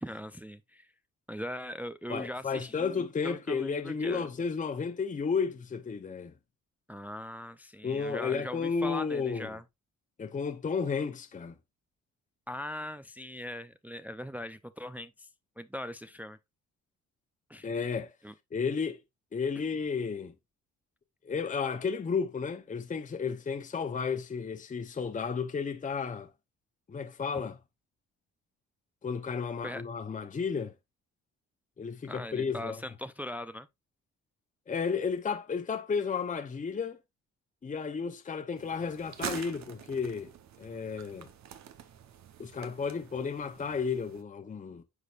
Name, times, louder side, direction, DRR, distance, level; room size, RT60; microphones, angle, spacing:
voice 1, 0.0-0.9 1.3-3.0 3.2-4.3 6.9-9.6 12.5-15.3 15.6-16.4 17.5-17.7 18.2-18.3 29.6-29.8 32.1-33.7, left 1 dB, 5° right, 0.4 m, -40 dB
voice 2, 2.1-6.3 7.8-9.6 10.2-11.5 17.6-18.1 18.5-19.0 19.3-20.3 21.2-26.3 26.9-27.6 29.0-30.7 31.8-32.8 34.7-37.0 37.6-40.3 40.6-41.3 42.4-44.8, left 5 dB, 25° left, 0.8 m, -33 dB
sound 1, 38.6-44.2, right 9 dB, 65° right, 1.0 m, -45 dB
9.6 x 4.9 x 2.5 m
cardioid pair, 90°, 30 cm